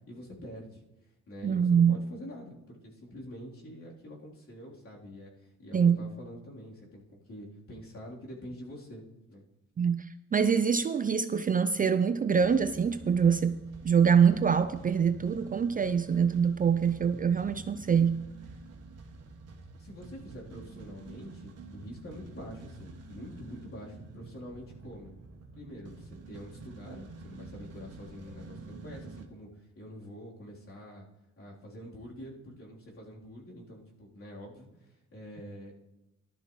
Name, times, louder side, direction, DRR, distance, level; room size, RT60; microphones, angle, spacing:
voice 1, 0.1-0.8 1.3-9.0 9.3-9.4 19.8-25.1 25.5-31.1 31.4-35.7, equal, 45° left, -4 dB, 3.5 m, -46 dB
voice 2, 1.4-2.0 5.7-6.0 9.8-13.6 13.8-18.3, right 7 dB, 30° right, 10 dB, 0.4 m, -25 dB
sound 1, 12.3-29.3, right 3 dB, 55° right, 1.4 m, -48 dB
14.5 x 12.0 x 3.1 m, 0.97 s
cardioid pair, 90°, 30 cm